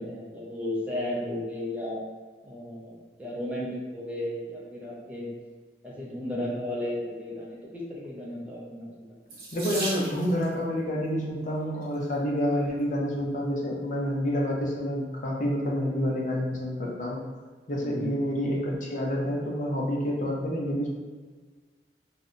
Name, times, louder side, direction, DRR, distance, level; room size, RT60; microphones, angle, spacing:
voice 1, 0.0-2.0 2.4-5.3 5.8-9.1 17.8-18.1, left 1 dB, 10° right, -6 dB, 0.5 m, -34 dB
Water tap faucet / Sink (filling or washing), 9.3-10.5 11.6-12.0 12.6-12.7 13.1-13.2, right 2 dB, 55° right, 0.7 m, -36 dB
voice 2, 9.5-17.2 17.7-20.9, equal, 45° left, -2 dB, 0.5 m, -28 dB
2.7 x 2.1 x 2.4 m, 1.4 s
head